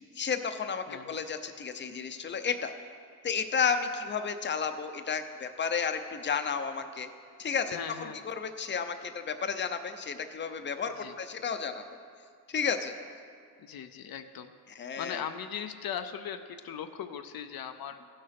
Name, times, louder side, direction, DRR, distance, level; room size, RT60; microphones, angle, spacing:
voice 1, 0.0-2.7 3.2-7.1 7.4-7.8 8.3-11.8 12.5-12.9 14.8-15.2, left 6 dB, 30° left, 8 dB, 0.7 m, -32 dB
voice 2, 0.9-1.2 7.7-8.2 10.9-11.1 13.6-14.5 15.0-18.1, left 8 dB, 75° left, 8 dB, 0.6 m, -39 dB
15.0 x 6.5 x 5.9 m, 2.2 s
cardioid pair, 105°, 36 cm